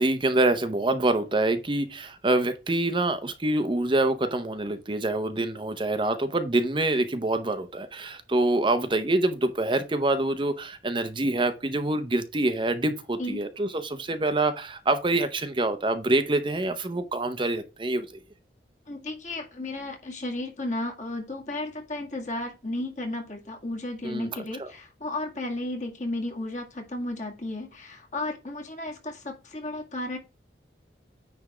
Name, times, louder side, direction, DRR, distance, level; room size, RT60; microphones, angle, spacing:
voice 1, 0.0-18.1 24.0-24.3 24.6-24.7, right 2 dB, 30° right, 0.7 m, -26 dB
voice 2, 18.9-30.2, left 2 dB, 45° left, 2.1 m, -33 dB
9.6 x 3.5 x 5.0 m
head